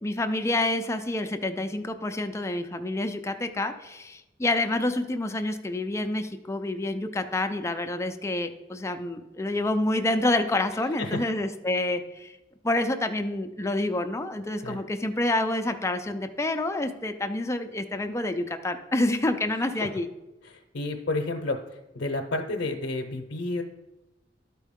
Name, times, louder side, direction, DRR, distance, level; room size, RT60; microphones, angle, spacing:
voice 1, 0.0-12.4 12.6-20.1, left 2 dB, 15° left, 7 dB, 0.5 m, -28 dB
voice 2, 20.4-21.6 21.9-23.6, left 2 dB, 85° left, 2 dB, 0.7 m, -30 dB
12.0 x 4.5 x 3.6 m, 0.99 s
head